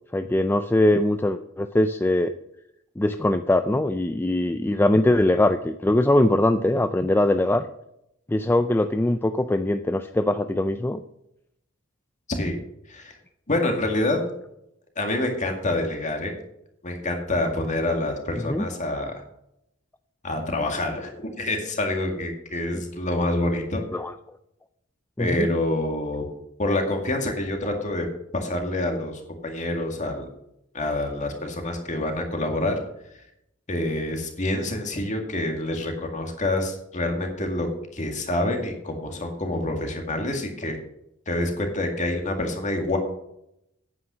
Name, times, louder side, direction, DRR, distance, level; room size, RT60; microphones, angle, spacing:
voice 1, 0.1-2.3 3.0-7.7 8.3-11.0 18.5-18.6 22.7-22.8 23.9-24.1 25.2-25.5, left 1 dB, 10° left, 9 dB, 0.4 m, -22 dB
voice 2, 13.5-14.2 15.0-16.3 16.8-19.2 20.2-23.8 25.2-26.3 26.6-28.1 28.3-30.3 30.7-32.8 33.7-40.8 41.3-43.0, left 1 dB, 35° left, 3 dB, 2.0 m, -27 dB
9.5 x 8.7 x 6.1 m, 0.80 s
head